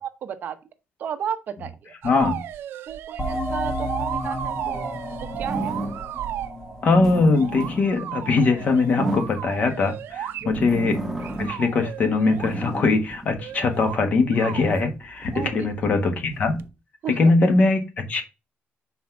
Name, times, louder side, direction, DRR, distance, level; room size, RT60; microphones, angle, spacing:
voice 1, 0.0-0.6 1.0-2.3 2.9-5.0 5.4-5.7 10.4-10.7 15.3-15.7 17.0-17.3, right 8 dB, 50° right, 0.8 m, -33 dB
voice 2, 2.0-2.4 6.8-11.0 11.4-16.6 17.2-18.2, left 3 dB, 40° left, 1.3 m, -21 dB
sound 1, 2.0-6.6 7.3-10.8 11.2-12.6 13.4-14.0 14.3-14.9 16.6-16.7, right 11 dB, 75° right, 0.4 m, -35 dB
sound 2, 3.2-8.5, equal, 10° left, 1.4 m, -32 dB
sound 3, 5.3-6.2 6.7-9.9 10.4-11.7 12.1-14.0 14.6-16.7, right 2 dB, 5° right, 1.3 m, -33 dB
5.9 x 4.2 x 5.8 m
cardioid pair, 175°, 4 cm